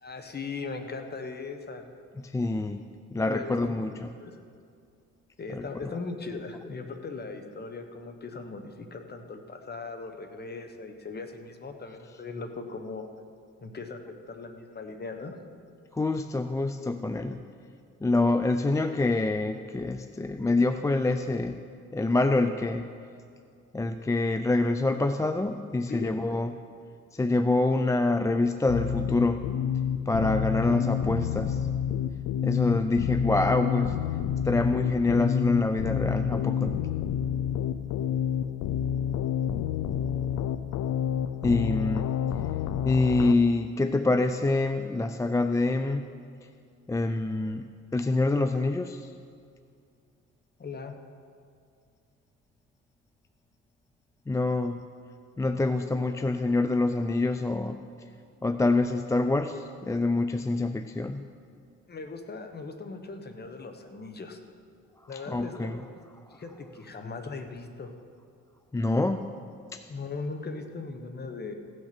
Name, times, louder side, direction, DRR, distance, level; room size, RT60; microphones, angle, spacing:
voice 1, 0.0-1.8 3.2-3.9 4.2-4.4 5.4-13.1 13.6-14.0 14.3-15.4 25.8-26.1 50.6-51.0 61.9-64.4 65.1-66.0 66.3-67.9 69.9-71.5, left 4 dB, 35° left, 6 dB, 1.1 m, -39 dB
voice 2, 2.2-2.8 3.1-4.1 5.5-5.6 15.9-17.4 18.0-21.6 21.9-22.9 23.7-26.6 27.1-29.4 30.1-31.6 32.4-34.0 34.4-36.8 41.4-42.1 42.8-46.0 46.9-49.1 54.3-54.8 55.4-57.8 58.4-61.2 65.1-65.8 68.7-69.3 69.7-69.8, left 2 dB, 10° left, 9 dB, 0.3 m, -26 dB
sound 1, 28.7-43.3, left 9 dB, 80° left, 0.6 m, -29 dB
16.0 x 6.3 x 5.9 m, 2.3 s
cardioid pair, 90°, 30 cm